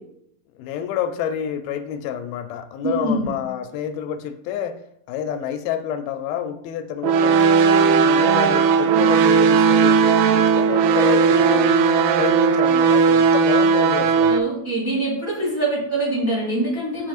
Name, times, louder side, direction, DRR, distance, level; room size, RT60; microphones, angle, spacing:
voice 1, 0.6-4.8 5.1-11.8 12.2-14.4, left 9 dB, 85° left, 9 dB, 2.4 m, -28 dB
voice 2, 2.8-3.3 14.3-17.1, right 2 dB, 10° right, -7 dB, 2.2 m, -24 dB
sound 1, 7.0-14.4, right 5 dB, 85° right, 2.4 m, -16 dB
8.7 x 5.9 x 2.5 m, 0.74 s
omnidirectional pair, 4.2 m